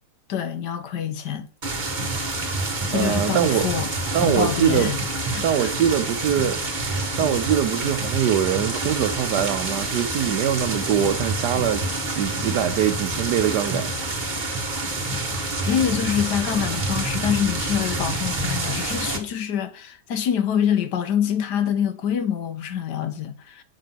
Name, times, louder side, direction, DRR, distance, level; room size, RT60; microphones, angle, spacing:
voice 1, 0.3-1.5 2.9-5.0 5.3-5.7 15.7-23.6, left 8 dB, 80° left, 1.5 m, -25 dB
sound 1, 1.6-19.2, right 2 dB, 30° right, 1.4 m, -27 dB
voice 2, 2.9-3.7 4.1-4.9 5.4-6.6 7.2-11.8 12.1-13.9, right 10 dB, 80° right, 1.4 m, -23 dB
7.7 x 5.4 x 5.8 m
omnidirectional pair, 1.8 m